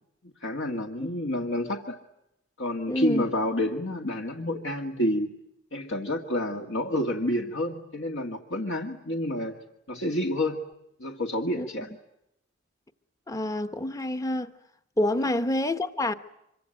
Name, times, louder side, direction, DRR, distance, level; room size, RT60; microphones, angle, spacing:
voice 1, 0.4-2.0 2.6-5.3 5.7-9.6 9.9-10.6 11.0-11.9, left 1 dB, 60° left, 2.0 m, -29 dB
voice 2, 2.9-3.2 11.5-11.7 13.3-14.5 15.0-16.1, left 1 dB, 15° left, 1.1 m, -27 dB
26.0 x 24.0 x 9.1 m
head